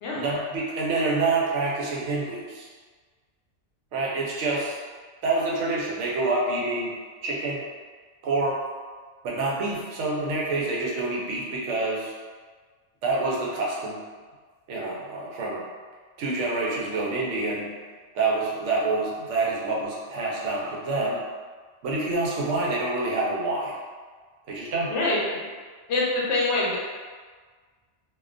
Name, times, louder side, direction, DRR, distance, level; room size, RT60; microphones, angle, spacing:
voice 1, 0.1-2.7 3.9-4.8 5.2-6.9 7.2-7.6 8.2-8.6 9.2-12.1 13.0-14.0 14.7-15.6 16.2-17.7 18.1-21.2 21.8-23.7 24.5-24.9, right 3 dB, 80° right, -4 dB, 0.9 m, -27 dB
voice 2, 24.9-25.4 25.9-26.8, left 2 dB, 75° left, -4 dB, 0.9 m, -25 dB
2.3 x 2.2 x 2.4 m, 1.5 s
omnidirectional pair, 1.2 m